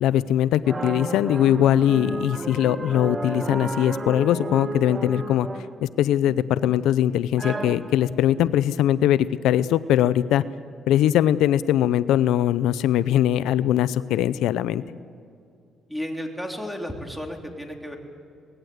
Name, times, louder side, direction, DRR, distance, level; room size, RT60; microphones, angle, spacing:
voice 1, 0.0-5.5 5.8-10.4 10.9-14.8, left 11 dB, 90° left, 16 dB, 0.5 m, -21 dB
sound 1, 0.6-5.8 6.2-6.9 7.4-8.1, right 3 dB, 25° right, 1.7 m, -33 dB
voice 2, 15.9-18.0, equal, ahead, 2 dB, 3.5 m, -33 dB
24.0 x 19.5 x 8.0 m, 2.4 s
cardioid pair, 90°, 0 cm